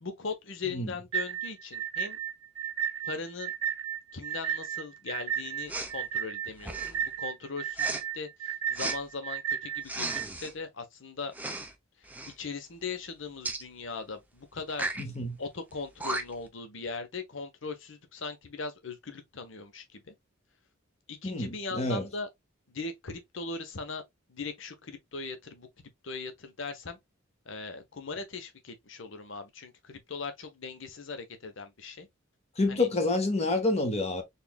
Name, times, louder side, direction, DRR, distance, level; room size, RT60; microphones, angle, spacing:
voice 1, 0.0-2.2 3.0-3.5 4.1-11.3 12.3-14.9 15.4-20.1 21.1-22.3 22.7-24.0 24.3-25.7 26.0-27.0 27.5-32.1 32.7-32.9, left 4 dB, 60° left, 0.9 m, -39 dB
sound 1, 1.1-10.3, right 9 dB, 70° right, 0.5 m, -33 dB
Respiratory sounds, 5.7-5.9 6.6-7.0 7.7-8.0 8.7-9.0 9.8-10.5 11.3-11.7 12.0-12.3 13.4-13.6 14.7-15.0 15.7-15.8 16.0-16.5, right 2 dB, 10° right, 0.5 m, -35 dB
voice 2, 15.0-15.4 21.2-22.1 32.6-34.2, left 2 dB, 30° left, 0.9 m, -28 dB
4.1 x 3.5 x 2.2 m
head